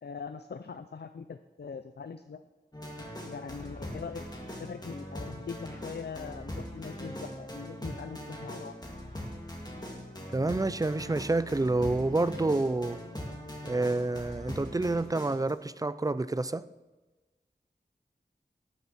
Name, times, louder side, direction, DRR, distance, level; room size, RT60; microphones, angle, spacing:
voice 1, 0.0-2.4 3.2-4.2 4.6-8.8, left 5 dB, 70° left, 0.5 m, -42 dB
sound 1, 2.7-15.5, equal, 25° left, 2.2 m, -41 dB
voice 2, 10.3-13.0 13.6-16.6, right 2 dB, 20° right, 0.4 m, -28 dB
11.5 x 9.8 x 4.2 m
wide cardioid pair, 55°, 18 cm